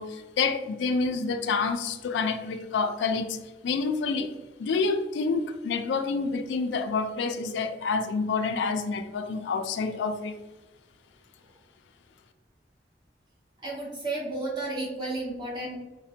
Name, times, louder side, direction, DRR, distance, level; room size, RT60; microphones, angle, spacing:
voice 1, 0.0-3.4 3.6-4.3 4.6-10.4, left 4 dB, 90° left, 8 dB, 0.3 m, -28 dB
voice 2, 13.6-15.7, right 2 dB, 25° right, -5 dB, 1.1 m, -32 dB
4.1 x 2.1 x 2.7 m, 1.1 s
head